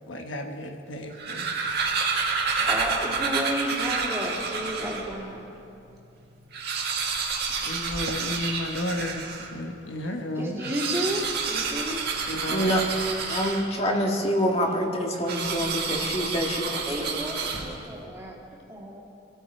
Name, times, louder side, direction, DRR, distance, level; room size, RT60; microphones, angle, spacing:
voice 1, 0.1-1.6 7.7-10.6 12.3-12.7, left 1 dB, 70° left, 4 dB, 1.2 m, -33 dB
sound 1, 1.0-5.2 5.7-5.8 6.0-6.1 6.4-9.6 10.5-14.0 15.3-18.0, right 5 dB, 55° right, 1.7 m, -29 dB
voice 2, 2.7-5.5 10.4-12.0 16.9-18.4 18.7-19.0, equal, 15° right, -3 dB, 2.5 m, -32 dB
voice 3, 12.5-12.8 13.3-16.8, equal, 30° left, 0 dB, 1.7 m, -26 dB
23.0 x 13.5 x 4.4 m, 2.7 s
head